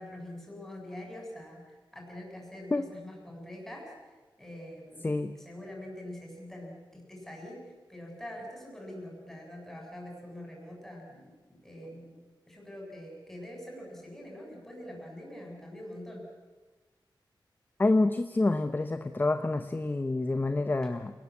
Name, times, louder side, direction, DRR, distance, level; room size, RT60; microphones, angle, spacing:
voice 1, 0.0-5.1 5.3-12.2 12.5-16.3 20.8-20.9, left 1 dB, 5° left, -1 dB, 7.4 m, -44 dB
voice 2, 17.8-21.1, left 2 dB, 25° left, 9 dB, 0.9 m, -27 dB
28.0 x 19.5 x 8.5 m, 1.3 s
wide cardioid pair, 145°, 8 cm